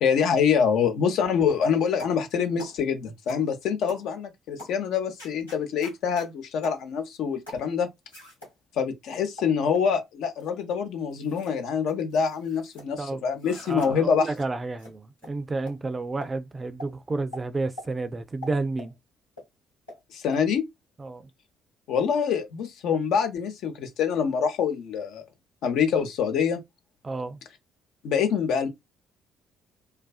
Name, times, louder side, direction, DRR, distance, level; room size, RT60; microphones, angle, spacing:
voice 1, 0.0-7.9 8.8-14.3 20.1-20.6 21.9-25.2 25.6-26.6 28.0-28.7, left 7 dB, 60° left, 0.5 m, -25 dB
sound 1, 2.0-2.2 2.6-2.8 3.3-3.5 3.9-4.1 4.6-4.8 5.2-6.3 6.6-6.8 7.5-7.7 8.1-8.5 9.1-9.9 10.4-10.6 11.1-11.6 11.9-12.9 13.4-13.9 14.3-14.5 14.8-14.9 15.2-15.3 15.7-15.8 16.2-16.3 16.8-16.9 17.3-17.4 17.8-17.9 18.4-18.9 19.4-19.5 19.9-20.0 20.3-20.4, left 1 dB, 90° left, 1.0 m, -43 dB
voice 2, 13.0-18.9 21.0-21.3 27.0-27.4, right 3 dB, 30° right, 0.4 m, -31 dB
2.4 x 2.2 x 2.3 m
figure-of-eight pair, 45°, 0 cm